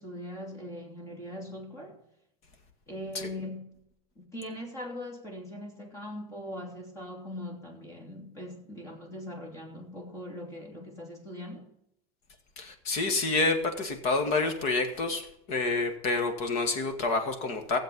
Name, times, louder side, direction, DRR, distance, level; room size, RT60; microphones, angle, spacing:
voice 1, 0.0-2.0 2.9-3.8 4.2-11.7, left 1 dB, 15° left, 2.8 m, -41 dB
voice 2, 12.6-17.8, left 3 dB, 35° left, 1.9 m, -28 dB
16.0 x 7.7 x 5.4 m
supercardioid pair, 170°, 18 cm